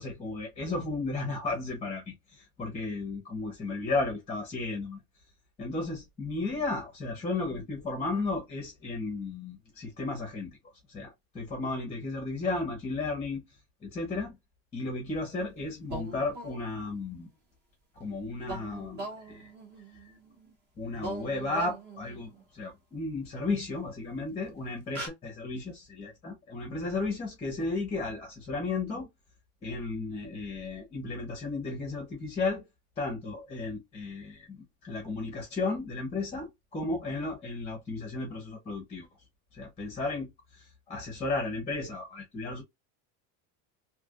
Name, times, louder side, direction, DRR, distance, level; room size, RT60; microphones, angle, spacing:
voice 1, 0.0-5.0 5.6-10.6 10.9-13.4 13.8-14.4 14.7-17.3 18.0-19.5 20.8-29.1 29.6-32.6 33.0-39.1 39.5-40.3 40.6-42.6, left 3 dB, 15° left, 0.9 m, -34 dB
sound 1, 15.9-17.0 18.4-20.5 20.9-22.4 23.9-24.0 24.5-24.6 24.9-25.1, right 2 dB, 25° right, 1.3 m, -41 dB
3.2 x 2.9 x 2.4 m
cardioid pair, 170°, 42 cm